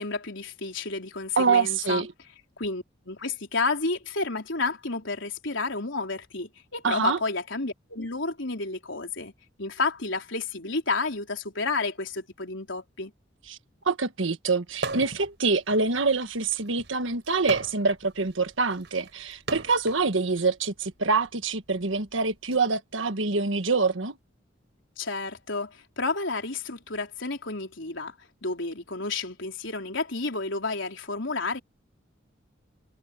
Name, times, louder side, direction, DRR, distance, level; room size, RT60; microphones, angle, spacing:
voice 1, 0.0-2.1 2.6-9.3 9.6-13.1 25.0-28.1 28.4-31.6, left 3 dB, 75° left, 4.0 m, -31 dB
voice 2, 1.4-2.1 6.8-7.2 13.5-13.6 13.8-24.2, right 4 dB, 80° right, 1.5 m, -25 dB
sound 1, 14.7-15.3 15.7-20.0 20.9-22.6, right 3 dB, 60° right, 6.2 m, -38 dB
head